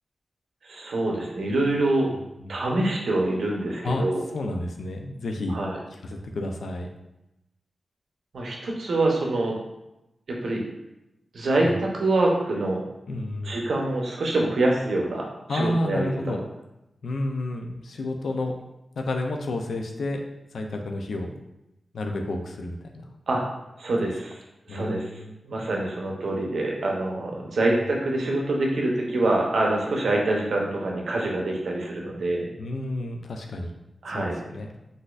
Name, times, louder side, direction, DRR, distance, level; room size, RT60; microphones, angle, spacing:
voice 1, 0.6-2.1 2.5-4.2 5.5-5.8 8.3-9.6 10.3-10.7 11.3-12.8 13.4-16.4 23.3-23.4 23.8-24.4 24.7-25.1 25.4-32.5 34.0-34.4, right 2 dB, 80° right, -1 dB, 0.7 m, -25 dB
voice 2, 4.3-5.6 6.0-6.9 11.6-11.8 13.1-13.5 15.5-16.4 17.0-18.5 19.0-20.2 20.5-21.3 21.9-23.0 24.7-25.4 32.6-33.7 34.1-34.7, left 2 dB, 80° left, 3 dB, 0.4 m, -30 dB
4.0 x 2.6 x 2.4 m, 0.92 s
wide cardioid pair, 150°, 0 cm